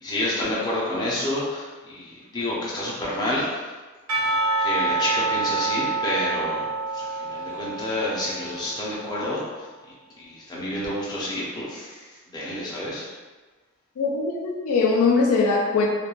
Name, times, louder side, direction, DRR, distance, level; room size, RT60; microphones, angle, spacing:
voice 1, 0.0-3.7 4.6-9.7 10.2-13.1, left 1 dB, 20° left, -7 dB, 0.5 m, -29 dB
Percussion / Church bell, 4.1-8.9, right 3 dB, 75° right, 0.5 m, -27 dB
voice 2, 14.0-15.9, left 4 dB, 75° left, 0 dB, 0.4 m, -21 dB
2.3 x 2.1 x 2.9 m, 1.3 s
head